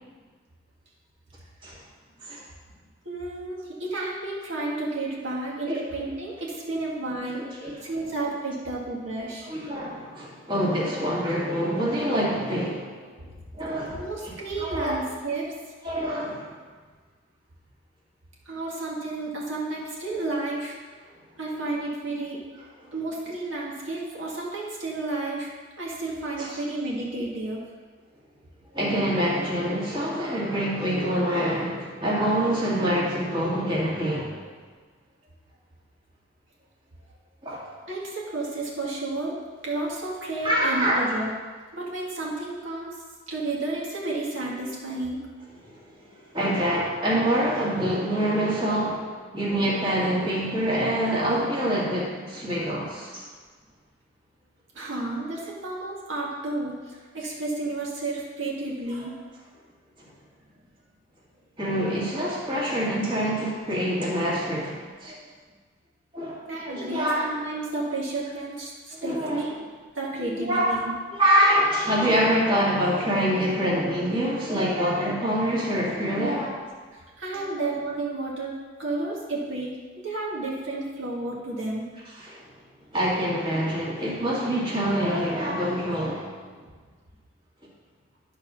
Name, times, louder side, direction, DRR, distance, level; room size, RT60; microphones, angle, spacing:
voice 1, 3.1-7.4 7.8-9.5 13.9-15.5 18.5-20.7 21.4-22.4 22.9-25.5 25.8-27.6 37.9-39.4 39.6-41.3 41.7-43.0 43.3-45.2 54.8-59.1 66.5-69.6 70.0-70.9 76.9-81.8, right 2 dB, 85° right, -4 dB, 1.9 m, -31 dB
voice 2, 7.4-7.8 9.4-13.3 13.5-15.0 15.8-16.5 26.4-26.5 28.7-34.4 37.4-37.6 40.4-41.1 45.6-45.8 46.1-53.3 61.6-65.3 66.1-66.4 66.7-67.3 69.0-69.5 70.2-70.8 71.1-76.6 82.1-82.4 82.9-86.5, equal, 25° right, -5 dB, 1.9 m, -26 dB
11.5 x 4.1 x 6.1 m, 1.5 s
head